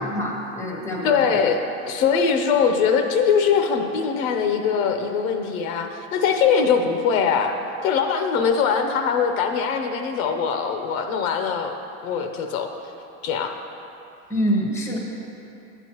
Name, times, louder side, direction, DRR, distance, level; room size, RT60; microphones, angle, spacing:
voice 1, 0.0-1.3 14.3-15.0, equal, 5° left, -1 dB, 0.9 m, -25 dB
voice 2, 1.0-1.6 1.9-7.6 7.8-11.8 12.0-12.7 13.2-13.5, left 6 dB, 70° left, 5 dB, 0.9 m, -22 dB
12.0 x 9.1 x 3.0 m, 2.8 s
supercardioid pair, 150°, 43 cm